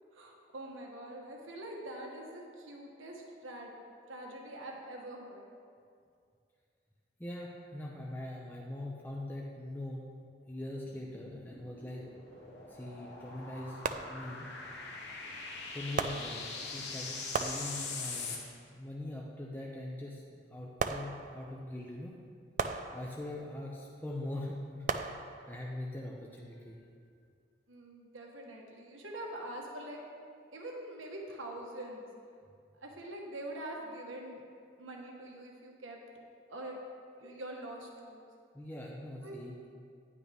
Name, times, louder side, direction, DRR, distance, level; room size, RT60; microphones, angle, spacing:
voice 1, 0.1-3.8 4.1-5.5 27.7-30.0 30.5-32.1 32.8-34.4 34.8-36.0 36.5-36.8 37.2-38.2 39.2-39.4, right 1 dB, 90° right, 0 dB, 1.4 m, -44 dB
voice 2, 7.2-10.1 10.5-12.1 12.7-13.8 14.1-14.5 15.7-18.4 18.7-20.2 20.5-22.1 22.9-24.9 25.5-26.8 38.5-39.6, left 1 dB, 10° left, -3 dB, 0.6 m, -42 dB
sound 1, 10.9-18.4, left 4 dB, 60° left, 1.2 m, -43 dB
sound 2, 12.3-12.5 13.8-14.6 16.0-16.9 17.3-18.3 20.8-21.7 22.6-23.5 24.9-25.8 26.4-26.5, right 5 dB, 40° right, 0.3 m, -37 dB
10.5 x 8.7 x 3.5 m, 2.3 s
head